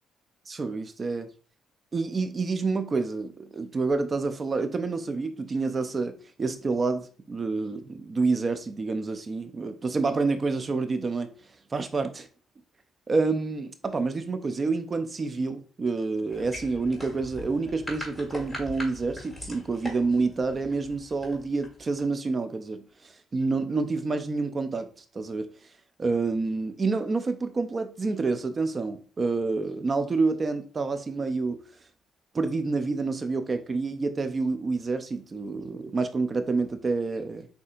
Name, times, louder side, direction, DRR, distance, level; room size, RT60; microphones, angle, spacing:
voice 1, 0.5-1.3 1.9-11.3 11.7-12.1 13.1-24.9 25.1-25.5 26.0-31.6 32.3-37.5, right 3 dB, 35° right, 0.5 m, -28 dB
sound 1, 16.3-22.1, left 1 dB, ahead, 2.0 m, -41 dB
6.5 x 2.8 x 2.4 m
cardioid pair, 90°, 0 cm